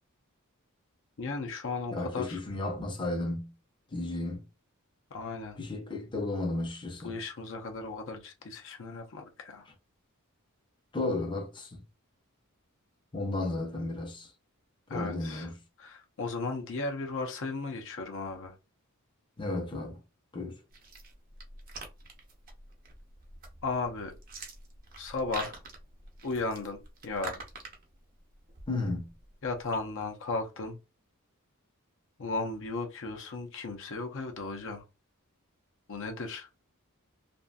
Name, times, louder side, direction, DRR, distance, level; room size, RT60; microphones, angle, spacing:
voice 1, 1.2-2.4 5.1-5.6 7.0-9.7 14.9-15.5 15.8-18.5 23.6-24.1 25.0-25.6 26.2-27.4 29.4-30.8 32.2-34.8 35.9-36.5, left 3 dB, 60° left, 0.6 m, -35 dB
voice 2, 1.9-3.5 3.9-4.4 5.6-7.1 10.9-11.8 13.1-14.3 14.9-15.6 19.4-20.0 20.3-20.6 28.7-29.1, left 2 dB, 20° left, 0.6 m, -33 dB
sound 1, 20.7-29.8, right 3 dB, 40° right, 0.7 m, -47 dB
2.6 x 2.5 x 2.2 m
head